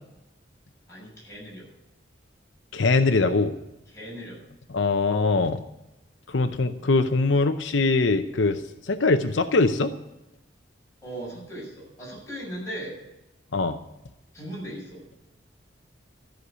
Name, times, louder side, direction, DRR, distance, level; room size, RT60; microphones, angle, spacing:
voice 1, 0.9-1.7 3.9-4.4 11.0-13.0 14.3-15.2, right 1 dB, 15° left, -5 dB, 6.8 m, -38 dB
voice 2, 2.7-3.5 4.7-5.6 6.3-9.9 13.5-13.8, left 3 dB, 85° left, 8 dB, 0.7 m, -22 dB
14.0 x 6.5 x 9.6 m, 0.95 s
head